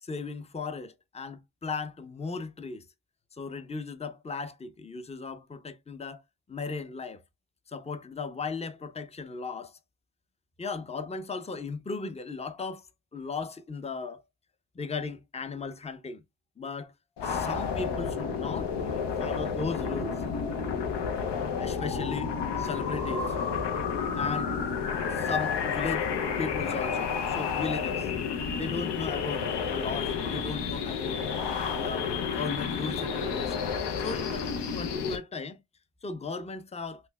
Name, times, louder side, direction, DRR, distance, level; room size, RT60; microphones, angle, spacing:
voice 1, 0.0-2.8 3.4-6.2 6.5-7.2 7.7-9.8 10.6-12.9 13.1-14.2 14.7-16.2 16.6-16.9 17.2-18.7 19.2-20.2 21.6-23.4 24.2-24.6 25.1-26.1 26.4-28.1 28.6-31.2 31.7-33.7 34.0-34.5 34.7-35.6 36.0-37.0, left 4 dB, 15° left, 0.6 m, -36 dB
sound 1, 17.2-35.2, left 6 dB, 80° left, 0.7 m, -31 dB
5.5 x 2.1 x 2.2 m
supercardioid pair, 45°, 40 cm